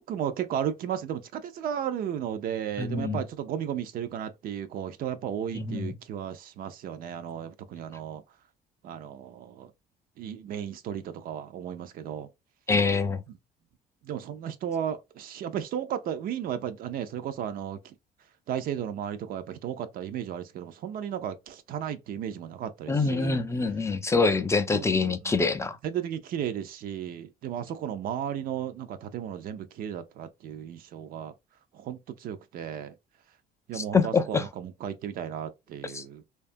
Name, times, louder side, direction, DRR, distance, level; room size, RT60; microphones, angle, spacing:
voice 1, 0.0-8.2 8.8-9.7 10.2-12.3 14.0-17.9 18.5-23.4 24.7-25.4 25.8-31.3 31.7-32.9 33.7-36.2, right 9 dB, 60° right, 0.4 m, -34 dB
voice 2, 2.8-3.2 5.5-5.9 12.7-13.2 22.9-25.8 33.7-34.5 35.8-36.0, left 4 dB, 15° left, 0.3 m, -25 dB
2.7 x 2.3 x 2.5 m
cardioid pair, 110°, 17 cm